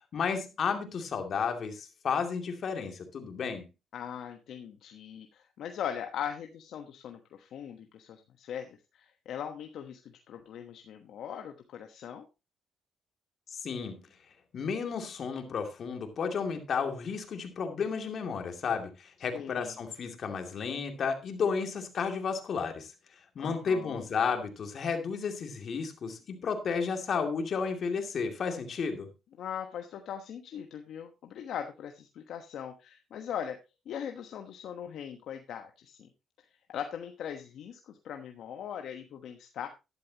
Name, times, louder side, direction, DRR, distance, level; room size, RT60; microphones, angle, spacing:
voice 1, 0.1-3.7 13.5-14.0 14.5-22.9 23.3-29.1, left 5 dB, 55° left, 5 dB, 2.6 m, -32 dB
voice 2, 3.9-12.2 19.3-19.7 23.4-24.1 29.4-33.6 33.9-36.1 36.7-39.7, left 9 dB, 75° left, 5 dB, 1.2 m, -40 dB
12.0 x 11.5 x 2.9 m, 0.26 s
cardioid pair, 90°, 0 cm